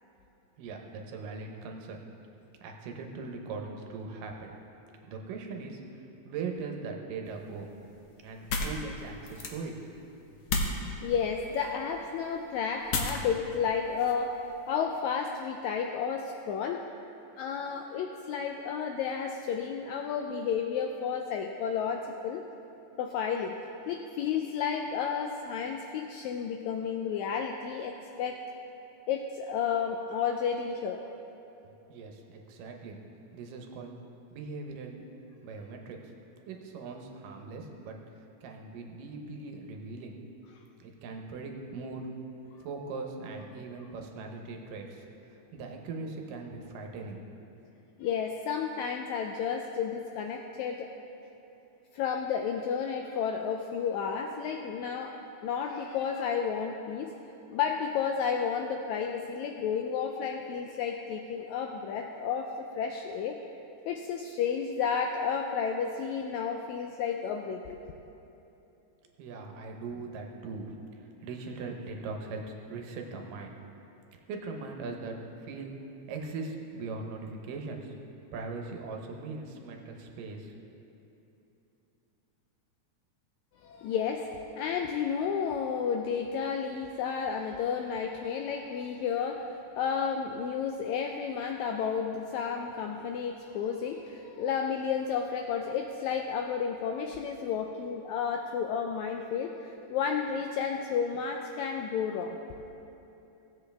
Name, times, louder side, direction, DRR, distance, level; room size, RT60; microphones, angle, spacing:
voice 1, 0.6-2.0 2.6-4.5 5.0-7.7 8.2-9.7 31.9-33.0 33.3-33.9 34.3-35.1 35.4-36.0 36.4-38.0 38.4-40.1 40.8-42.1 42.6-47.2 69.2-70.7 71.0-73.5 74.3-75.2 75.4-75.7 76.1-78.0 78.3-80.7, right 4 dB, 85° right, 2 dB, 2.6 m, -40 dB
wood hit, 7.3-14.8, left 3 dB, 65° left, 1.5 m, -36 dB
voice 2, 11.0-14.4 14.7-16.8 17.4-22.4 23.0-23.6 23.9-28.4 29.1-31.1 48.0-51.0 51.9-55.2 55.4-57.2 57.5-63.4 63.8-67.8 83.6-102.4, left 6 dB, 85° left, 3 dB, 1.6 m, -32 dB
17.0 x 8.0 x 3.4 m, 2.9 s
omnidirectional pair, 3.7 m